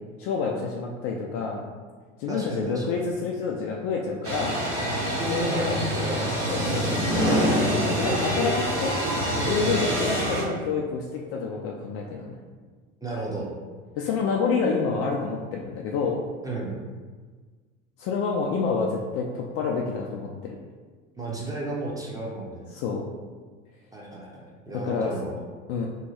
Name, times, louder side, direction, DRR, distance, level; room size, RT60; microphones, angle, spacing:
voice 1, 0.2-1.6 2.2-4.6 5.3-5.8 6.5-6.8 7.9-8.9 9.4-12.4 14.0-16.2 18.0-20.6 22.7-23.0 24.7-25.1 25.7-25.9, left 5 dB, 40° left, -1 dB, 0.4 m, -28 dB
voice 2, 2.3-3.1 5.2-6.3 6.6-7.3 9.6-9.8 13.0-13.5 16.4-16.7 21.2-22.7 23.9-25.4, right 1 dB, 10° right, -4 dB, 0.7 m, -33 dB
sound 1, 4.2-10.4, equal, 60° right, 1.4 m, -25 dB
2.7 x 2.3 x 4.1 m, 1.5 s
figure-of-eight pair, 75°, 38 cm